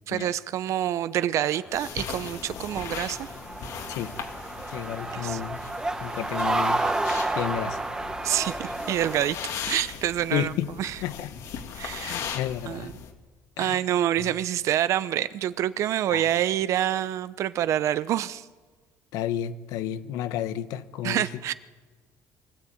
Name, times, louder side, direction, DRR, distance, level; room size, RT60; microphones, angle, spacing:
voice 1, 0.1-3.3 5.1-5.4 8.2-9.4 9.7-10.5 10.8-11.0 11.8-12.2 12.7-12.9 13.6-18.5 21.0-21.5, right 11 dB, 60° right, 15 dB, 0.7 m, -27 dB
sound 1, 1.5-9.2, right 2 dB, 10° right, 1.3 m, -31 dB
sound 2, 1.7-13.1, left 7 dB, 70° left, 2.2 m, -38 dB
voice 2, 4.7-5.6 6.0-6.8 7.3-7.8 10.3-10.7 11.0-11.3 12.0-12.9 13.6-13.8 14.2-14.3 16.1-16.2 19.1-21.2, left 11 dB, 90° left, 12 dB, 0.9 m, -31 dB
23.5 x 13.0 x 8.7 m, 1.4 s
cardioid pair, 135°, 6 cm